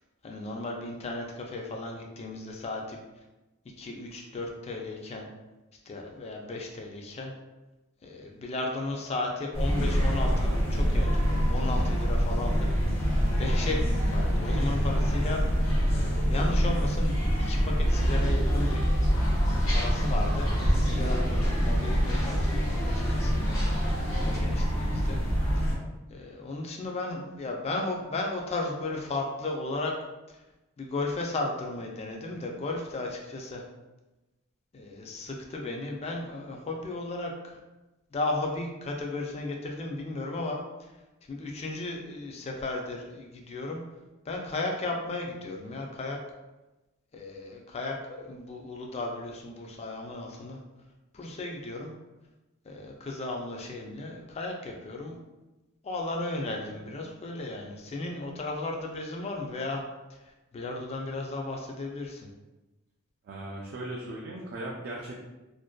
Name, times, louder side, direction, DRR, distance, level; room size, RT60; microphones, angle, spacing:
voice 1, 0.2-3.0 3.8-5.3 5.9-7.3 8.0-12.7 13.4-15.4 16.3-18.8 19.7-23.3 24.2-25.2 25.6-25.7 26.1-29.9 30.8-33.6 34.7-37.6 38.1-40.9 41.3-43.8 44.2-46.2 47.1-50.6 51.1-51.9 52.7-55.2 55.8-59.8 60.1-62.3, left 2 dB, 30° left, 1 dB, 0.3 m, -35 dB
sound 1, 9.5-25.7, equal, 70° left, 0.8 m, -25 dB
sound 2, 17.9-24.4, equal, 85° left, 1.1 m, -37 dB
voice 2, 63.2-65.2, right 1 dB, 50° right, -3 dB, 0.3 m, -38 dB
2.5 x 2.2 x 2.2 m, 1.1 s
head